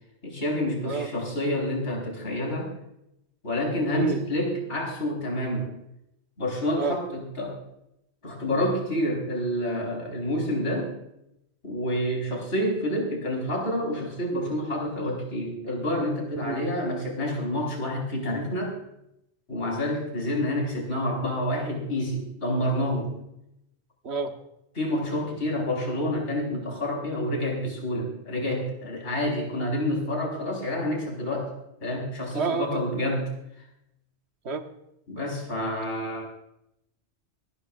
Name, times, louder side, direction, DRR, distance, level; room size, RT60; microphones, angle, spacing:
voice 1, 0.2-2.7 3.4-5.7 6.4-7.6 8.2-10.9 11.6-18.8 19.5-23.1 24.7-31.5 31.8-33.3 35.1-36.2, left 1 dB, 85° left, -1 dB, 5.0 m, -28 dB
voice 2, 3.9-4.2 6.8-7.0 16.4-16.6 24.0-24.3 32.3-32.8 34.4-34.6, right 5 dB, 70° right, 5 dB, 1.5 m, -28 dB
26.5 x 11.0 x 2.5 m, 0.81 s
omnidirectional pair, 1.2 m